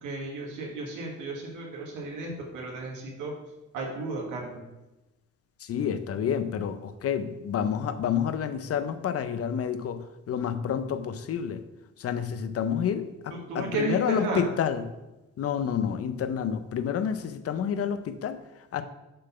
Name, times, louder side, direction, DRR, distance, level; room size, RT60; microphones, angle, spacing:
voice 1, 0.0-3.3 3.7-4.6 13.3-14.4, right 3 dB, 85° right, -1 dB, 1.7 m, -33 dB
voice 2, 5.6-11.6 12.0-14.9 15.4-18.8, left 8 dB, 50° left, 11 dB, 0.6 m, -29 dB
6.5 x 4.1 x 5.6 m, 1.0 s
cardioid pair, 90°, 30 cm